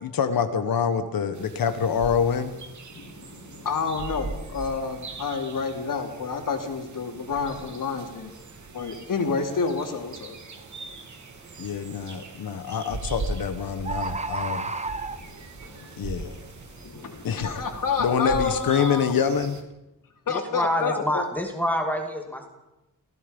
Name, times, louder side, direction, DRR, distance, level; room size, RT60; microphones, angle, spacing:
voice 1, 0.0-2.5 11.6-14.7 16.0-16.4 17.2-17.5 18.0-19.6, left 7 dB, 90° left, 8 dB, 1.5 m, -26 dB
sound 1, 1.3-19.6, right 3 dB, 55° right, 2.9 m, -40 dB
voice 2, 2.9-8.3 8.7-10.4 15.1-16.4 16.8-19.1 20.3-21.2, left 5 dB, 70° left, 3 dB, 3.5 m, -29 dB
Bird, 10.6-10.8 11.4-11.8 12.8-12.9 13.2-13.3 13.5-13.6 13.8-15.6 16.1-16.2, right 3 dB, 20° right, 1.0 m, -31 dB
voice 3, 20.3-22.5, equal, 5° left, 2 dB, 2.4 m, -27 dB
29.0 x 17.5 x 5.4 m, 0.96 s
wide cardioid pair, 155°, 34 cm